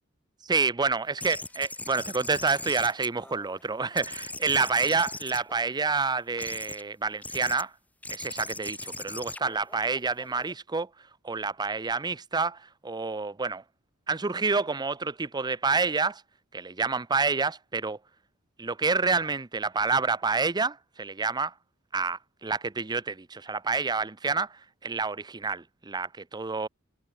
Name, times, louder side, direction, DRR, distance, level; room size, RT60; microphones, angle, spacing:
voice 1, 0.5-7.7 8.1-10.9 11.2-13.6 14.1-16.2 16.5-18.0 18.6-21.5 21.9-26.7, right 4 dB, 20° right, 0.6 m, -28 dB
sound 1, 1.2-3.6 4.0-5.9 6.4-6.8 7.2-7.6 8.0-10.5, left 2 dB, 5° left, 1.7 m, -40 dB
head